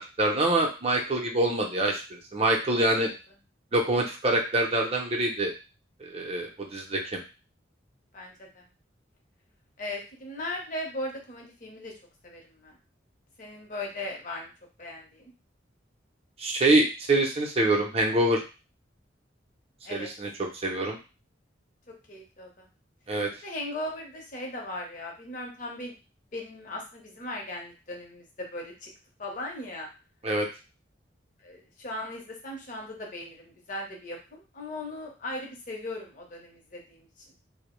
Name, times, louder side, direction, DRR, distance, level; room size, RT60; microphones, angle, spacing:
voice 1, 0.0-2.0 2.3-3.1 3.7-5.5 6.1-7.2 16.4-18.4 19.9-21.0 23.1-23.3 30.2-30.5, right 2 dB, 30° right, 1 dB, 0.5 m, -25 dB
voice 2, 8.1-8.6 9.8-11.9 12.2-12.8 13.4-14.5 14.8-15.3 19.8-20.1 21.9-22.6 23.4-25.9 26.3-28.9 29.2-29.9 31.4-37.1, left 1 dB, 45° left, 0 dB, 0.7 m, -38 dB
2.6 x 2.0 x 3.0 m, 0.31 s
head